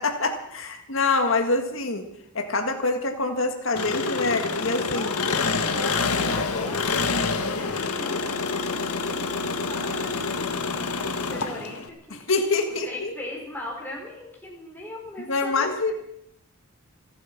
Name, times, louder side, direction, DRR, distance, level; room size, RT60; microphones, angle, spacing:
voice 1, 0.0-2.0 2.4-5.1 12.3-13.1 15.3-15.9, left 3 dB, 60° left, 5 dB, 1.8 m, -25 dB
Engine, 3.8-11.9, left 4 dB, 85° left, 1.5 m, -27 dB
voice 2, 4.9-8.4 8.7-9.3 9.6-12.2 12.7-15.7, left 1 dB, 10° left, -2 dB, 4.4 m, -39 dB
27.0 x 9.1 x 5.9 m, 0.76 s
head